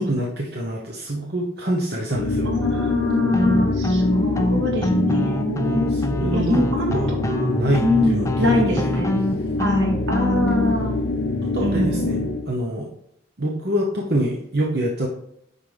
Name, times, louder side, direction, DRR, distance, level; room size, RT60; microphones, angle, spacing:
voice 1, 0.0-2.5 5.8-6.6 6.9-7.1 7.5-8.9 11.4-12.2 12.5-12.9 13.4-15.1, right 1 dB, 55° right, -2 dB, 0.9 m, -26 dB
sound 1, 2.1-12.5, left 2 dB, 80° left, 0.6 m, -25 dB
voice 2, 2.4-7.5 7.8-9.2 9.6-11.0 11.6-12.2, left 1 dB, 75° right, 0 dB, 2.1 m, -24 dB
sound 2, 3.3-10.7, left 1 dB, 15° left, 0.4 m, -25 dB
9.2 x 5.7 x 3.4 m, 0.74 s
head